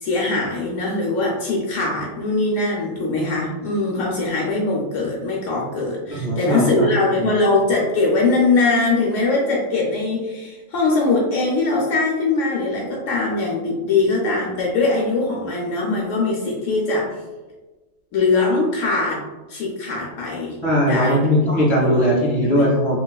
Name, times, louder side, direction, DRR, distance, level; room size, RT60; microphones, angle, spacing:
voice 1, 0.0-17.1 18.1-19.2 19.5-20.6 20.8-21.2 21.8-22.0 22.5-22.7, left 3 dB, 75° left, -3 dB, 0.9 m, -21 dB
voice 2, 6.1-6.9 7.2-7.3 20.6-23.0, equal, 20° left, -6 dB, 1.3 m, -19 dB
3.0 x 2.9 x 2.2 m, 1.2 s
omnidirectional pair, 1.3 m